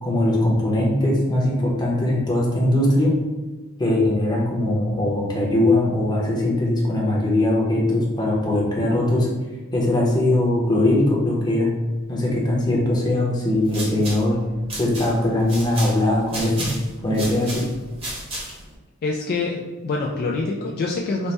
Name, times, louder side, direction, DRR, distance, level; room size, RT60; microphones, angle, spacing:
voice 1, 0.0-3.2 3.8-9.3 9.7-11.7 12.1-14.4 14.7-16.7 17.0-17.6, left 1 dB, 20° left, -3 dB, 0.8 m, -20 dB
sound 1, 13.5-18.7, right 1 dB, 30° right, 0.9 m, -34 dB
voice 2, 19.0-21.3, left 3 dB, 50° left, -1 dB, 0.3 m, -25 dB
4.1 x 2.1 x 3.3 m, 1.3 s
head